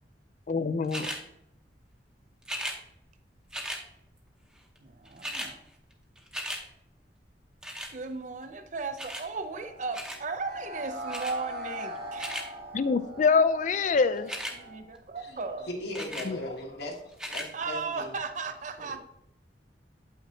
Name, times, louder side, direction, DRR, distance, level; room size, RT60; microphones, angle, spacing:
voice 1, 0.5-1.1 12.7-14.3 16.3-16.4, left 5 dB, 45° left, 13 dB, 0.4 m, -25 dB
sound 1, 0.9-1.2 2.4-2.8 3.5-3.8 4.8-4.9 5.0-5.5 5.9-6.6 7.6-7.9 9.0-9.3 9.9-10.2 11.1-11.4 12.0-12.5 14.2-14.6 15.9-16.3 17.1-17.5 18.1-18.2, equal, 5° right, 0.9 m, -36 dB
voice 2, 4.8-5.6 7.9-12.4 14.5-15.7 17.5-19.0, right 4 dB, 45° right, 8 dB, 0.5 m, -36 dB
sound 2, 9.5-14.8, right 1 dB, 70° right, 2.0 m, -41 dB
voice 3, 15.1-18.1 18.8-19.0, left 1 dB, 70° left, -1 dB, 1.4 m, -39 dB
8.0 x 5.8 x 2.7 m, 0.81 s
head